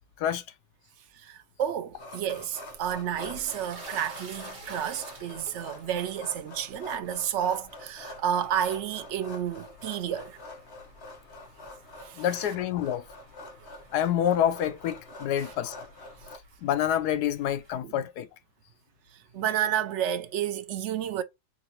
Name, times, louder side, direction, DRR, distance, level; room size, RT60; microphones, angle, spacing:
voice 1, 1.1-10.4 12.0-12.5 17.8-17.9 19.3-21.2, right 9 dB, 70° right, 0.7 m, -31 dB
sound 1, 2.0-16.4, left 2 dB, 45° left, 1.2 m, -46 dB
sound 2, 2.7-17.7, right 2 dB, 50° right, 1.7 m, -52 dB
voice 2, 12.2-13.0 13.9-15.9 16.6-18.3, left 10 dB, 75° left, 1.1 m, -27 dB
4.0 x 3.8 x 2.9 m
omnidirectional pair, 1.8 m